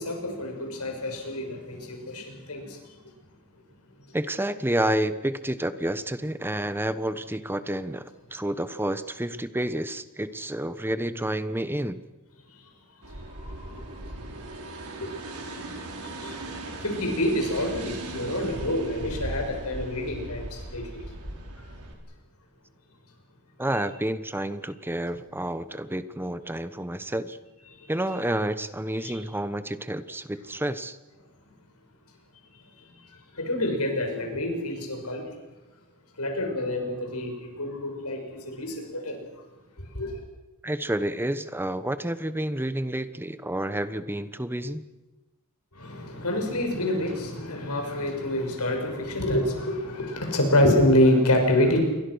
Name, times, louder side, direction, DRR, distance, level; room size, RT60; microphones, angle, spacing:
voice 1, 0.0-2.8 12.6-12.7 13.4-14.0 15.0-15.1 16.0-16.4 16.8-21.0 29.0-29.2 33.3-35.3 36.2-39.2 39.9-40.2 45.7-51.8, left 1 dB, 90° left, 3 dB, 6.6 m, -27 dB
voice 2, 4.1-8.0 8.3-12.0 23.6-27.4 27.9-31.0 40.6-44.9, right 1 dB, 10° right, 12 dB, 1.1 m, -29 dB
sound 1, 13.0-21.9, right 1 dB, 85° right, 5.2 m, -38 dB
28.0 x 23.0 x 6.4 m, 1.1 s
head